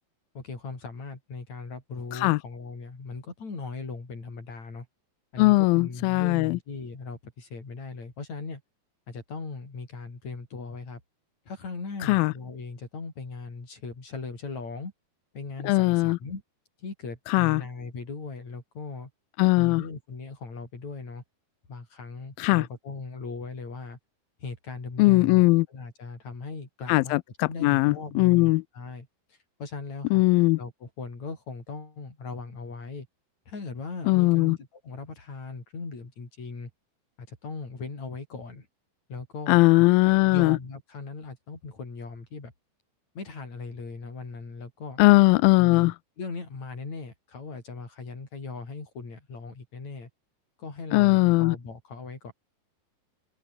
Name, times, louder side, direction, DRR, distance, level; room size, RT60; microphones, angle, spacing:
voice 1, 0.4-4.9 5.3-8.6 9.1-11.0 11.5-14.9 15.3-16.4 16.8-19.1 19.6-21.2 21.7-24.0 24.4-27.2 27.5-30.2 30.6-33.1 33.5-36.7 37.2-38.7 39.1-39.6 40.0-42.5 43.2-45.0 45.6-50.1 50.6-52.3, left 4 dB, 45° left, 7.3 m, -39 dB
voice 2, 5.4-6.6 12.0-12.3 15.6-16.2 17.3-17.6 19.4-19.8 22.4-22.7 25.0-25.7 26.9-28.6 30.1-30.6 34.1-34.6 39.5-40.6 45.0-45.9 50.9-51.6, left 22 dB, 80° left, 2.2 m, -20 dB
omnidirectional pair, 4.5 m